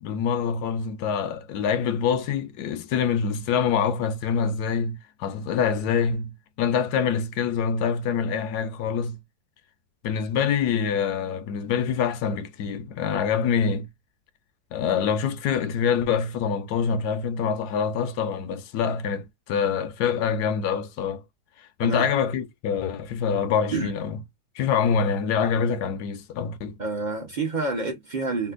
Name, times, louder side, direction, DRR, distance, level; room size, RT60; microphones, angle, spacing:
voice 1, 0.0-9.2 10.0-13.9 14.7-21.2 21.6-24.2 24.6-26.8, left 7 dB, 70° left, 1.0 m, -25 dB
voice 2, 26.8-28.5, right 3 dB, 50° right, 0.5 m, -28 dB
4.1 x 2.1 x 2.5 m
omnidirectional pair, 2.1 m